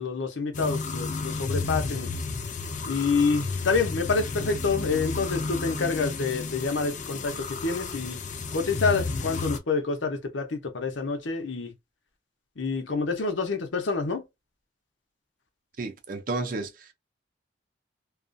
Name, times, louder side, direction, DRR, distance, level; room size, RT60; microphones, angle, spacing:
voice 1, 0.0-2.1 2.9-7.3 7.6-8.2 8.5-11.7 12.6-14.2, left 4 dB, 80° left, 0.7 m, -27 dB
sound 1, 0.5-9.6, left 4 dB, 40° left, 0.4 m, -32 dB
voice 2, 15.8-16.9, right 3 dB, 45° right, 0.5 m, -32 dB
2.3 x 2.3 x 2.5 m
head